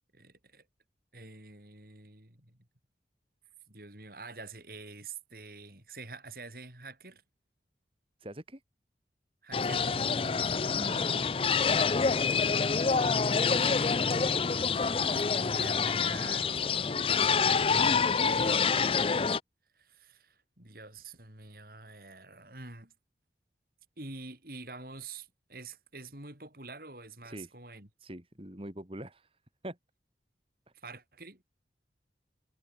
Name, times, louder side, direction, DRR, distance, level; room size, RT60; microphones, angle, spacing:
voice 1, 0.1-0.7 1.1-2.6 3.7-7.2 9.4-9.8 12.5-14.5 15.4-16.6 17.4-19.1 19.7-22.9 24.0-27.9 30.7-31.4, right 3 dB, 55° right, 6.2 m, -47 dB
voice 2, 8.2-8.6 10.7-11.4 27.2-27.5 28.0-29.3 29.6-29.8, right 1 dB, 30° right, 3.5 m, -43 dB
sound 1, 9.5-19.4, left 5 dB, 30° left, 0.5 m, -27 dB
head